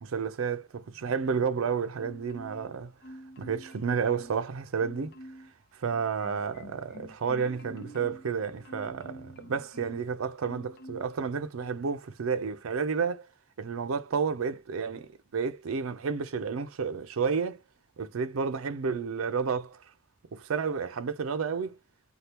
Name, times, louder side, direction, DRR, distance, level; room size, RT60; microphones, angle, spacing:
voice 1, 0.0-2.9 3.4-5.1 5.8-13.3 13.6-17.6 18.0-19.8 20.3-21.8, right 6 dB, 90° right, 0.5 m, -31 dB
Marimba xylophone, 2.0-2.7 3.0-4.5 4.8-5.5 5.9-10.1 10.4-11.2 11.5-11.7, equal, 50° left, 0.6 m, -48 dB
2.8 x 2.3 x 3.3 m
head